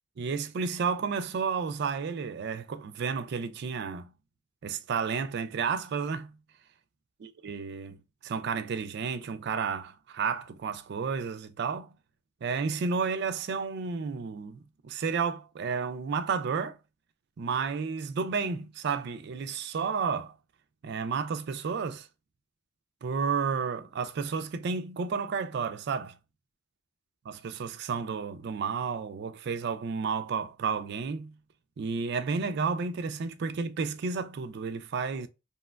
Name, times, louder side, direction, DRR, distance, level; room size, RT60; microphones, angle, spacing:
voice 1, 0.2-4.1 4.6-6.3 7.2-8.0 8.2-11.9 12.4-16.8 17.4-20.3 20.8-22.1 23.0-26.2 27.3-31.3 31.8-35.3, right 5 dB, 55° right, 0.3 m, -31 dB
2.9 x 2.2 x 2.3 m
head